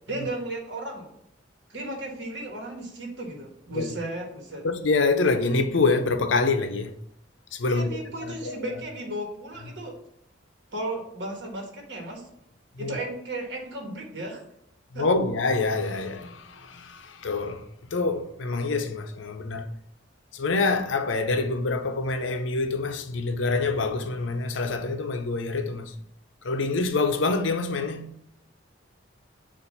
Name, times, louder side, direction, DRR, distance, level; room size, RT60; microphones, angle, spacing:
voice 1, 0.1-1.1 1.7-4.6 7.7-9.9 10.7-12.2 12.8-14.4 14.9-15.1, right 2 dB, 70° right, 1.4 m, -35 dB
voice 2, 4.6-6.9 7.5-8.7 12.8-13.0 14.9-17.6 17.9-19.7 20.3-25.9 26.4-28.1, left 3 dB, 85° left, 0.6 m, -26 dB
6.9 x 2.5 x 5.3 m
head